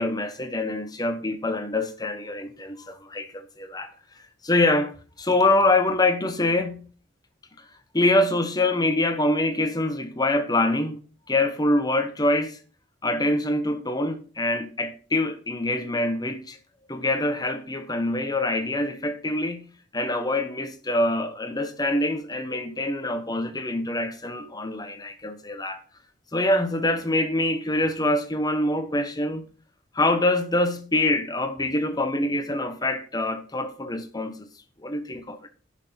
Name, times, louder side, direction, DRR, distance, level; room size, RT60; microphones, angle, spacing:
voice 1, 0.0-3.9 4.4-4.9 5.2-6.9 7.9-11.0 11.3-12.6 13.0-16.6 16.9-19.7 19.9-25.8 26.3-29.5 29.9-34.5 34.8-35.4, left 2 dB, 20° left, 1.3 m, -25 dB
11.0 x 6.5 x 5.9 m
head